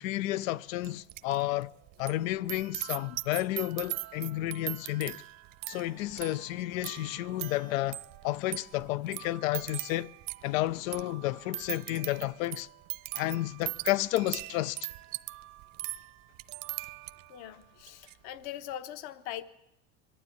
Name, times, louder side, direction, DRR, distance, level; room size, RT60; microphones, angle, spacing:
voice 1, 0.0-1.7 2.0-5.2 5.7-10.1 10.4-12.7 13.1-14.9, left 16 dB, 90° left, 0.7 m, -31 dB
sound 1, 0.8-1.4 1.6-17.4 17.8-18.1, right 18 dB, 55° right, 0.8 m, -40 dB
voice 2, 17.3-19.4, left 12 dB, 65° left, 1.2 m, -41 dB
23.0 x 12.5 x 9.4 m
supercardioid pair, 120°, 39 cm